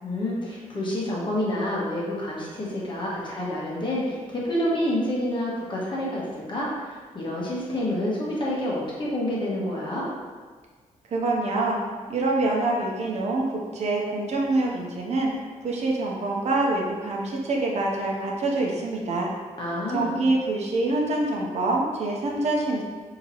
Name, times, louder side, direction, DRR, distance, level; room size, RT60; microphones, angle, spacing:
voice 1, 0.0-10.1 19.6-20.3, left 1 dB, 35° left, -5 dB, 1.1 m, -28 dB
voice 2, 11.1-11.8 12.1-15.3 15.6-19.3 19.9-22.8, right 2 dB, 60° right, -1 dB, 0.7 m, -25 dB
5.4 x 2.9 x 2.9 m, 1.5 s
wide cardioid pair, 160°, 13 cm